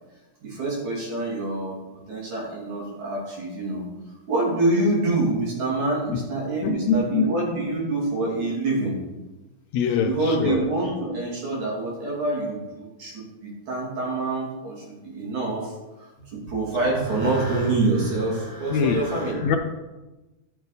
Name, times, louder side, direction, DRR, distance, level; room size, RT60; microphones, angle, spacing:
voice 1, 0.4-1.8 2.1-3.8 4.3-9.0 10.1-16.1 16.3-19.5, right 2 dB, 70° right, -4 dB, 4.0 m, -26 dB
voice 2, 6.6-7.6 9.7-10.6 18.7-19.1 19.4-19.6, left 5 dB, 75° left, 5 dB, 1.9 m, -24 dB
12.5 x 7.2 x 4.0 m, 1.1 s
omnidirectional pair, 3.5 m